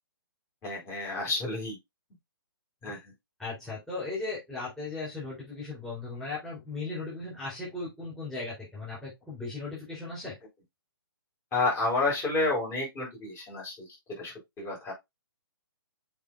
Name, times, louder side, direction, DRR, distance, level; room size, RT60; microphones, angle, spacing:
voice 1, 0.6-1.8 2.8-3.0 11.5-13.9 14.2-14.9, left 3 dB, 20° left, 4.5 m, -30 dB
voice 2, 3.4-10.3, left 3 dB, 5° left, 4.4 m, -37 dB
7.2 x 5.1 x 2.6 m
figure-of-eight pair, 130°, 12 cm